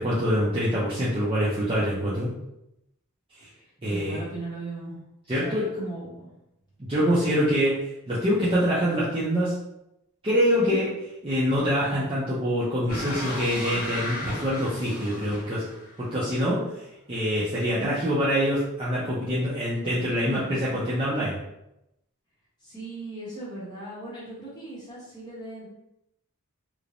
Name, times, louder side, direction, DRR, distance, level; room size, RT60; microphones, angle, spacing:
voice 1, 0.0-2.3 3.3-3.5 3.8-4.2 5.3-5.7 6.8-9.6 10.2-10.9 11.2-15.6 16.0-21.4, equal, 25° right, -9 dB, 0.4 m, -25 dB
voice 2, 3.8-5.0 5.3-6.3 10.5-10.8 17.7-18.0 20.3-20.9 22.6-25.7, right 2 dB, 20° left, -8 dB, 0.8 m, -38 dB
sound 1, 12.9-16.0, left 1 dB, 85° left, 1.4 m, -35 dB
3.1 x 2.0 x 2.5 m, 0.86 s
head